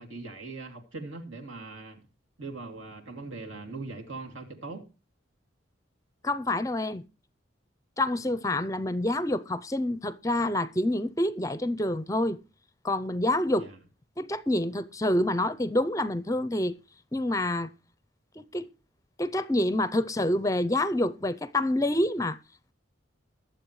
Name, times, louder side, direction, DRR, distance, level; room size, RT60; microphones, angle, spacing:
voice 1, 0.0-2.1 2.4-4.8 13.6-13.8, right 3 dB, 75° right, 2.7 m, -40 dB
voice 2, 6.2-7.0 8.0-12.4 12.8-13.7 14.2-16.8 17.1-17.7 18.4-18.7 19.2-22.4, left 1 dB, 15° left, 0.5 m, -27 dB
21.5 x 7.6 x 3.1 m
head